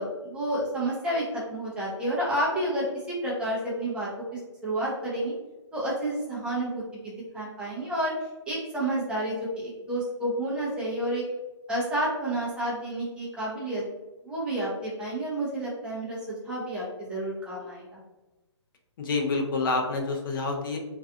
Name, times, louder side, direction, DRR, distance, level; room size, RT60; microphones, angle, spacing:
voice 1, 0.0-2.9 3.2-5.4 5.7-8.1 8.5-11.2 11.7-13.8 14.2-18.0, right 1 dB, 5° right, -6 dB, 0.6 m, -30 dB
voice 2, 19.0-20.8, left 3 dB, 45° left, 2 dB, 0.5 m, -27 dB
2.4 x 2.3 x 2.5 m, 1.1 s
hypercardioid pair, 140°, 16 cm